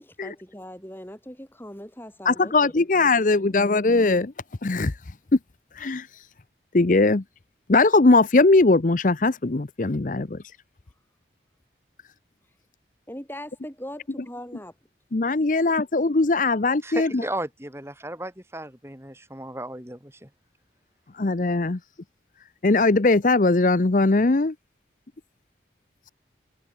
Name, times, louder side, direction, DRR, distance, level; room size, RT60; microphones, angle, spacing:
voice 1, 0.0-3.7 13.1-14.7, equal, 10° left, 7.2 m, -41 dB
voice 2, 2.3-4.3 4.6-4.9 5.8-6.1 6.7-7.2 7.7-10.4 15.1-17.2 21.1-21.8 22.6-24.5, left 3 dB, 45° left, 0.7 m, -20 dB
voice 3, 16.8-20.3, right 1 dB, 15° right, 4.9 m, -35 dB
head